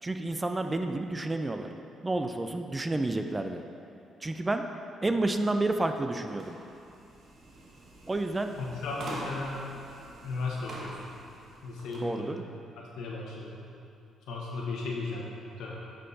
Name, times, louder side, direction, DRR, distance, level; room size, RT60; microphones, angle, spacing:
voice 1, 0.0-1.7 2.0-3.6 4.2-4.7 5.0-6.6 8.1-8.6 12.0-12.4, right 2 dB, 20° right, 6 dB, 0.4 m, -30 dB
sound 1, 6.3-12.1, right 1 dB, 60° right, 1.1 m, -45 dB
voice 2, 8.6-9.7 10.2-11.0 11.6-12.5 12.8-13.7 14.3-15.7, left 3 dB, 85° left, -3 dB, 1.1 m, -36 dB
8.2 x 5.6 x 2.7 m, 2.6 s
cardioid pair, 90°, 0 cm